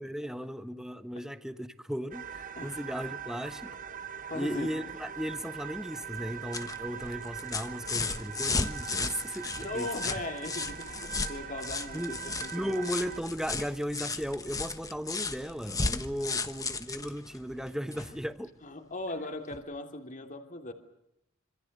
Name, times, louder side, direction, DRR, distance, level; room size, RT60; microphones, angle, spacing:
voice 1, 0.0-3.8 4.3-10.1 11.9-12.2 12.5-18.5, equal, 5° right, 10 dB, 1.2 m, -36 dB
sound 1, 2.1-13.2, right 8 dB, 40° right, 1.1 m, -42 dB
voice 2, 4.3-4.7 9.6-12.8 16.3-16.4 18.6-20.7, left 2 dB, 40° left, 5 dB, 2.9 m, -39 dB
sound 2, 6.1-18.2 19.5-19.6, left 3 dB, 15° left, 1.3 m, -35 dB
27.0 x 26.5 x 6.7 m, 0.80 s
head